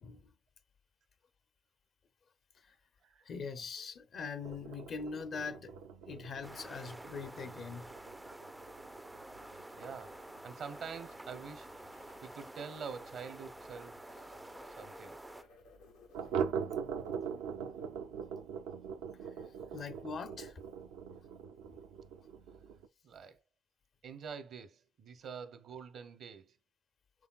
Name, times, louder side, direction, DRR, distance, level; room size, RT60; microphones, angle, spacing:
voice 1, 3.2-5.7 6.0-7.9 19.7-20.6, left 5 dB, 60° left, 0.6 m, -42 dB
sound 1, 4.4-13.7 14.0-14.1 14.4-14.5 14.9-15.0 16.1-22.9, right 7 dB, 85° right, 0.4 m, -42 dB
sound 2, 6.4-15.4, right 1 dB, 15° right, 0.3 m, -50 dB
sound 3, 9.4-18.0, left 4 dB, 90° left, 0.8 m, -61 dB
voice 2, 9.7-11.7 12.2-14.2 14.7-15.2 23.0-23.4 24.0-26.6, right 6 dB, 65° right, 0.8 m, -46 dB
6.3 x 3.4 x 2.4 m
hypercardioid pair, 45°, 0 cm